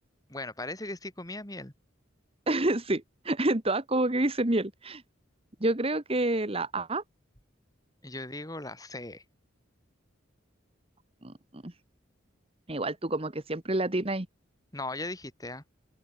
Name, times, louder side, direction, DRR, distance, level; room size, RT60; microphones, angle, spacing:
voice 1, 0.3-1.7 8.0-9.2 14.7-15.6, left 2 dB, 20° left, 4.3 m, -38 dB
voice 2, 2.5-5.0 5.6-7.0 11.2-11.3 11.6-11.7 12.7-14.3, right 2 dB, 30° right, 1.6 m, -28 dB
open air
head